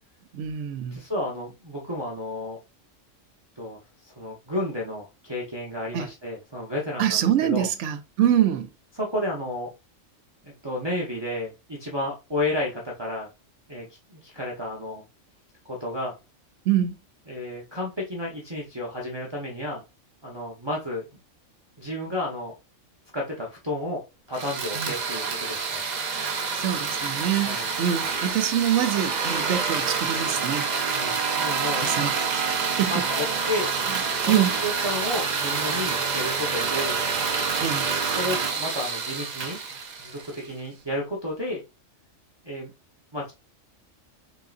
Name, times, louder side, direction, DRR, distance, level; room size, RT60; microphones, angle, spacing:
voice 1, 0.3-1.0 5.9-6.1 7.0-8.7 16.7-17.0 24.7-24.9 26.5-30.7 31.8-33.0 33.9-34.5 37.6-37.9, right 10 dB, 70° right, 0.9 m, -25 dB
voice 2, 0.9-2.6 3.6-7.7 9.0-9.7 10.4-13.3 13.7-15.0 15.6-16.1 17.3-19.8 20.2-21.1 21.8-22.5 23.1-24.0 24.3-25.8 27.4-27.7 30.9-31.9 32.9-33.7 34.2-37.0 37.8-41.6 42.4-42.7 43.1-43.3, left 1 dB, 25° right, 0.9 m, -32 dB
sound 1, 24.3-40.5, right 5 dB, 45° right, 0.6 m, -27 dB
3.9 x 3.7 x 2.5 m
omnidirectional pair, 1.3 m